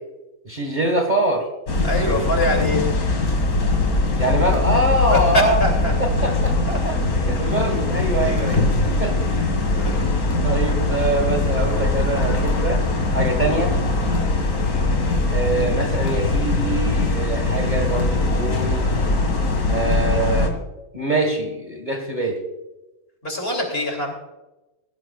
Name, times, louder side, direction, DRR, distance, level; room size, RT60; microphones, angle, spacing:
voice 1, 0.5-1.5 4.2-5.6 6.0-6.6 6.8-7.0 7.3-8.7 9.0-9.6 10.4-13.7 15.3-18.9 19.7-20.5 20.9-22.4, right 2 dB, 30° right, 3 dB, 1.9 m, -24 dB
sound 1, 1.7-20.5, left 2 dB, 85° left, 2.6 m, -21 dB
voice 2, 1.8-2.8 5.0-5.9 6.7-6.8 8.2-8.6 9.8-10.1 23.2-24.1, left 1 dB, 45° left, 2 dB, 3.1 m, -24 dB
18.0 x 15.0 x 2.4 m, 1.0 s
omnidirectional pair, 1.5 m